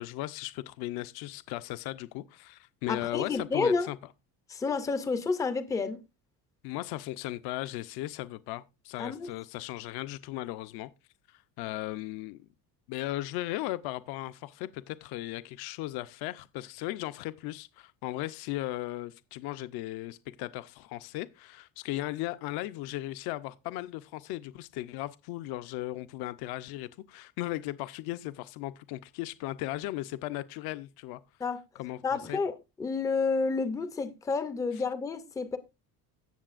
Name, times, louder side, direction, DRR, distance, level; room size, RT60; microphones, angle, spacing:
voice 1, 0.0-4.0 6.6-10.9 11.3-12.5 12.9-31.2 31.8-32.0 32.3-32.4, left 16 dB, 65° left, 0.6 m, -37 dB
voice 2, 2.9-3.9 4.5-6.0 9.0-9.3 31.4-31.6 32.0-32.5 32.8-35.6, left 4 dB, 10° left, 0.4 m, -30 dB
16.5 x 6.8 x 2.4 m
cardioid pair, 175°, 41 cm